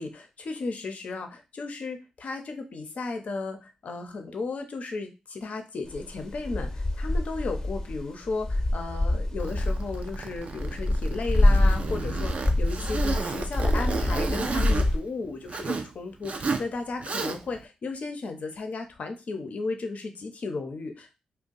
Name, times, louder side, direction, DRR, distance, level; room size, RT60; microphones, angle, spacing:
voice 1, 0.0-21.1, left 3 dB, 65° left, 5 dB, 0.7 m, -35 dB
sound 1, 5.9-15.0, left 1 dB, 25° left, 0.9 m, -26 dB
Zipper (clothing), 9.4-15.9 16.2-16.7 17.0-17.6, right 4 dB, 55° right, 0.5 m, -33 dB
2.5 x 2.2 x 3.9 m, 0.28 s
supercardioid pair, 40°, 3 cm